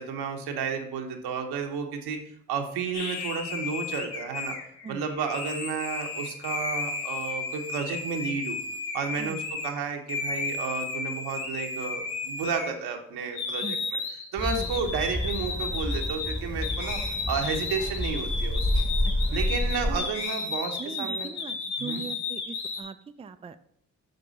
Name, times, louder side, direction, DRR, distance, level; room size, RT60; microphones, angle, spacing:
voice 1, 0.0-2.2 2.5-4.5 4.9-8.6 8.9-13.8 14.3-17.0 17.3-18.8 19.3-21.3 21.8-22.1, right 5 dB, 85° right, 3 dB, 1.1 m, -32 dB
sound 1, 2.9-9.7 10.1-13.0 13.3-22.8, left 4 dB, 80° left, 1.1 m, -33 dB
sound 2, 14.4-20.0, left 1 dB, 10° left, 1.3 m, -29 dB
voice 2, 20.8-23.6, right 5 dB, 15° right, 10 dB, 0.4 m, -40 dB
6.7 x 5.3 x 4.0 m, 0.70 s
supercardioid pair, 50°, 38 cm